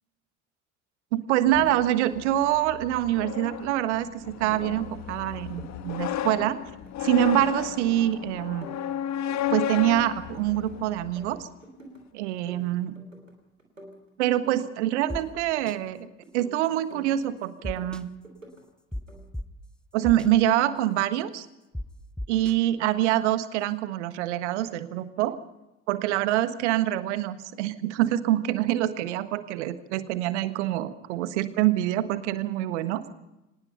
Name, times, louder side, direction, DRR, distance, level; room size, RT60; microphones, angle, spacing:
voice 1, 1.1-6.6 7.0-8.7 9.5-11.5 12.1-12.9 14.2-16.1 16.3-18.1 19.9-21.5 22.3-25.4 25.9-33.0, right 13 dB, 65° right, 12 dB, 1.5 m, -25 dB
sound 1, 1.5-11.4, left 10 dB, 45° left, 1.8 m, -34 dB
sound 2, 5.5-6.9 7.2-8.2 8.4-10.7 11.0-12.0 12.3-13.3 13.6-15.9 16.2-17.3 17.6-18.6 18.9-19.2, right 1 dB, 90° right, 3.3 m, -49 dB
sound 3, 15.1-15.2 15.7-15.8 17.6-18.0 18.9-19.0 19.3-19.4 20.0-20.3 21.7-21.8 22.2-22.5, left 1 dB, ahead, 1.1 m, -33 dB
25.0 x 19.5 x 5.7 m, 0.96 s
figure-of-eight pair, 55°, 37 cm